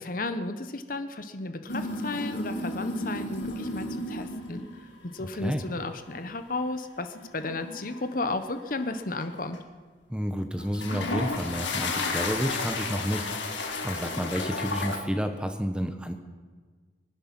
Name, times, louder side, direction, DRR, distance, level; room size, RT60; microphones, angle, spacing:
voice 1, 0.0-4.7 5.1-9.6, left 2 dB, 45° left, 9 dB, 0.9 m, -33 dB
sound 1, 1.7-4.8 5.3-5.6 7.1-8.8 9.2-9.6 10.6-15.0, left 2 dB, 80° left, 2.1 m, -33 dB
voice 2, 5.2-5.6 10.1-16.1, equal, 5° right, 7 dB, 0.9 m, -30 dB
23.0 x 10.5 x 6.0 m, 1.5 s
head